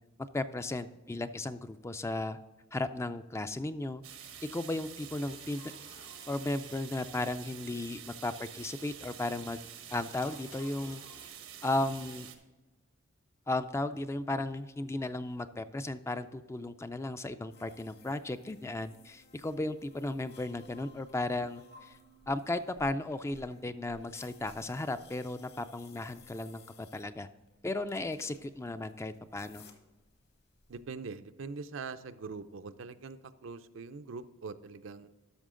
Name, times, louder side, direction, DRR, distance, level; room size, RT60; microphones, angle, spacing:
voice 1, 0.3-2.4 2.7-4.0 4.5-5.6 5.9-9.6 9.9-11.3 11.6-12.3 13.5-22.0 22.3-27.3 27.6-29.6, left 2 dB, 15° left, 11 dB, 0.3 m, -35 dB
sound 1, 4.0-12.3, right 9 dB, 90° right, 1.2 m, -48 dB
sound 2, 5.1-7.6 10.2-11.3, left 4 dB, 85° left, 2.9 m, -57 dB
sound 3, 17.5-30.8, left 3 dB, 55° left, 1.2 m, -59 dB
voice 2, 30.7-35.1, right 4 dB, 70° right, 10 dB, 0.5 m, -43 dB
12.5 x 6.3 x 3.7 m, 1.2 s
head